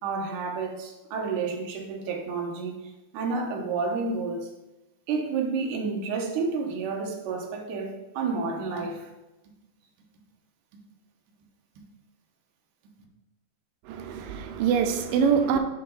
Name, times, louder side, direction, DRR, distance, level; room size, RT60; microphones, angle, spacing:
voice 1, 0.0-2.8 3.1-4.5 5.1-9.1, right 4 dB, 70° right, 1 dB, 2.2 m, -30 dB
voice 2, 13.9-15.6, right 7 dB, 90° right, 6 dB, 1.9 m, -24 dB
7.7 x 3.3 x 5.4 m, 1.0 s
omnidirectional pair, 4.4 m